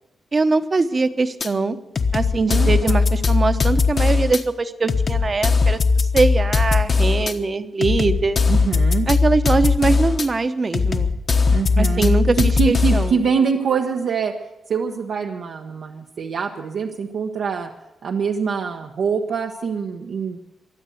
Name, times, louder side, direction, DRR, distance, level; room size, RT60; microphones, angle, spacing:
voice 1, 0.3-1.8 2.1-8.4 9.1-11.1 11.8-13.2, right 3 dB, 30° right, 10 dB, 1.0 m, -22 dB
sound 1, 1.4-1.5 2.0-4.4 4.9-7.3 7.8-10.3 10.7-13.1, left 4 dB, 45° left, 1.2 m, -19 dB
voice 2, 2.5-3.0 8.5-9.1 11.5-12.1 12.6-14.3 14.7-17.7 18.0-20.4, right 6 dB, 70° right, 2 dB, 1.1 m, -24 dB
23.0 x 8.0 x 7.8 m, 1.0 s
wide cardioid pair, 130°, 0 cm